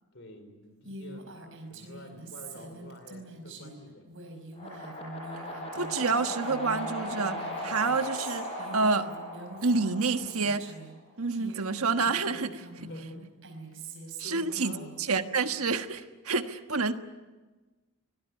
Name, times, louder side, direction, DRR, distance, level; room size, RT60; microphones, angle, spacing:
voice 1, 0.1-1.2 1.7-4.1 12.7-13.2 14.2-14.9, left 1 dB, 55° left, 8 dB, 4.6 m, -48 dB
Female speech woman speaking, 0.8-10.9 11.3-15.2, right 2 dB, 60° right, 5.2 m, -45 dB
sound 1, 4.5-10.7, left 1 dB, 25° left, 7.2 m, -38 dB
voice 2, 5.7-9.1 9.6-10.6 11.2-12.6 14.2-16.9, right 4 dB, 80° right, 8 dB, 1.4 m, -28 dB
25.0 x 19.0 x 9.7 m, 1.2 s
head